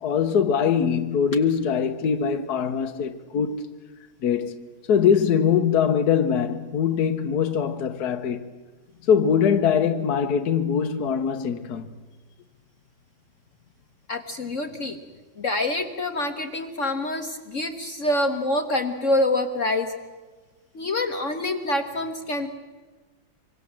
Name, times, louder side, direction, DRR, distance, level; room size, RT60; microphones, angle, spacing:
voice 1, 0.0-3.7 4.2-4.6 4.9-8.5 9.1-11.9, left 7 dB, 60° left, 1.4 m, -22 dB
voice 2, 14.1-15.0 15.4-19.9 20.7-22.5, left 1 dB, 45° left, 1.4 m, -26 dB
25.0 x 25.0 x 7.5 m
omnidirectional pair, 2.0 m